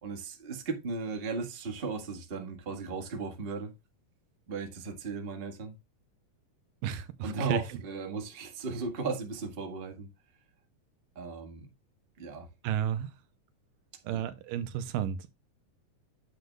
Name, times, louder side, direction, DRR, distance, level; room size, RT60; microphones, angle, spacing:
voice 1, 0.0-3.7 4.5-5.7 7.2-10.1 11.1-11.7 12.2-12.5 14.1-14.2, right 4 dB, 30° right, 1.1 m, -36 dB
voice 2, 6.8-7.6 12.6-13.1 14.0-15.3, right 10 dB, 85° right, 2.4 m, -32 dB
9.7 x 7.6 x 2.3 m
omnidirectional pair, 3.8 m